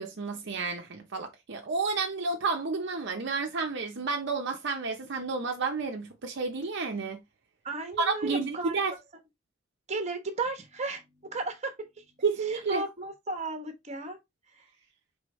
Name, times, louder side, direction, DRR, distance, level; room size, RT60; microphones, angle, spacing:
voice 1, 0.0-7.2 8.0-8.9 12.2-12.8, right 4 dB, 60° right, 0.7 m, -31 dB
voice 2, 7.6-8.8 9.9-12.0 12.4-14.2 14.5-14.7, right 3 dB, 35° right, 1.0 m, -35 dB
4.8 x 3.5 x 3.0 m
head